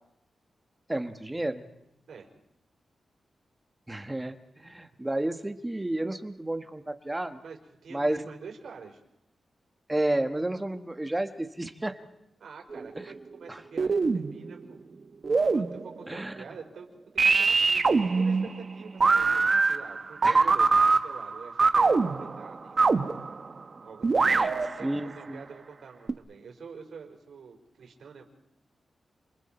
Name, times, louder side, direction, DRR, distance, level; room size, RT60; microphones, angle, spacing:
voice 1, 0.9-1.7 3.9-7.4 7.9-8.2 9.9-12.0 13.0-13.1 13.5-13.6 16.1-16.4 20.2-20.5 24.2-24.5 24.8-25.4, right 1 dB, 15° right, 7 dB, 1.6 m, -31 dB
voice 2, 7.4-9.0 12.4-14.8 15.5-16.9 17.2-19.4 19.7-23.0 23.8-24.9 25.2-28.2, right 5 dB, 80° right, 1 dB, 4.9 m, -46 dB
sound 1, 12.7-13.4 13.8-14.7 15.2-16.0 17.2-23.6 24.0-25.1 26.1-26.2, right 4 dB, 40° right, 1.2 m, -24 dB
29.0 x 28.5 x 4.5 m, 0.83 s
wide cardioid pair, 130°, 0 cm